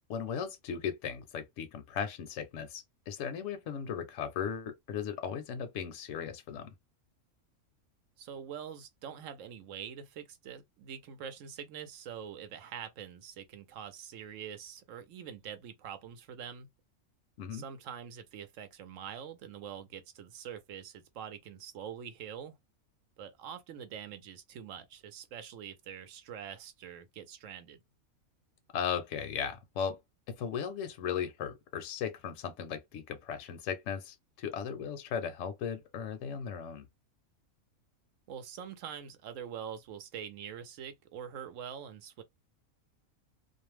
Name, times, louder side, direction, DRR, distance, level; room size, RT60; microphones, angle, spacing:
voice 1, 0.1-6.7 17.4-17.6 28.7-30.0 30.3-36.9, left 7 dB, 70° left, 0.8 m, -37 dB
voice 2, 8.2-16.7 17.5-22.6 23.2-27.8 38.3-42.2, right 8 dB, 70° right, 0.9 m, -44 dB
2.5 x 2.0 x 3.0 m
omnidirectional pair, 1.5 m